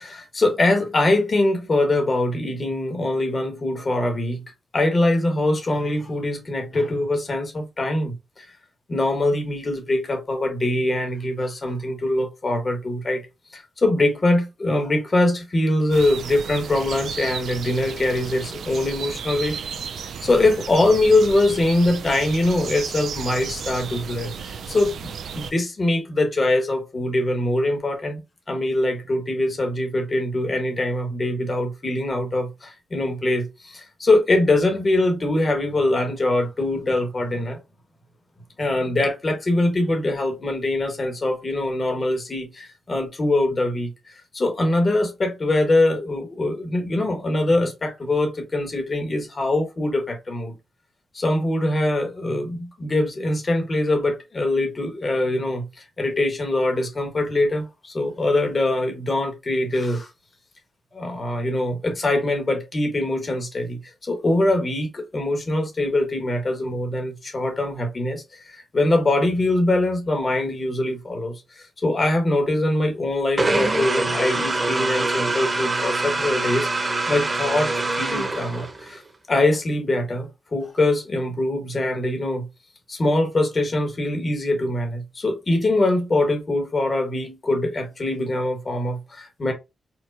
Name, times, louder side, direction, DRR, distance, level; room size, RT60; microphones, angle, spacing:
voice 1, 0.0-4.4 4.7-8.4 8.9-13.2 13.5-19.6 20.0-28.2 28.5-37.6 38.6-50.5 51.1-60.1 60.9-77.7 78.0-79.0 79.3-82.4 82.9-89.5, left 2 dB, 40° left, 1.4 m, -23 dB
sound 1, 15.9-25.5, right 6 dB, 80° right, 0.4 m, -34 dB
sound 2, 73.4-79.0, right 2 dB, 30° right, 1.0 m, -24 dB
4.4 x 2.2 x 2.7 m
cardioid pair, 70°, 0 cm